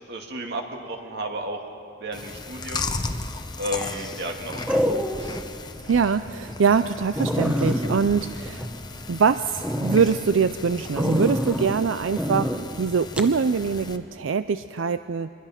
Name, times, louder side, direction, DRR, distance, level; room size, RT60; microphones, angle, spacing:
voice 1, 0.0-1.6 2.0-2.9 3.6-5.4, right 1 dB, 60° right, 3 dB, 2.2 m, -33 dB
Chewing mastication, 2.1-14.0, left 3 dB, 20° left, 0.9 m, -36 dB
sound 1, 3.1-3.5 4.7-5.4 5.9-6.0 6.5-6.6 6.8-6.9 7.2-9.2 9.6-10.0 11.0-11.8 12.2-12.6 13.2-13.3, equal, 5° right, 1.0 m, -26 dB
voice 2, 5.9-8.7 9.1-15.3, right 5 dB, 90° right, 12 dB, 0.5 m, -23 dB
26.0 x 21.0 x 5.9 m, 2.7 s
head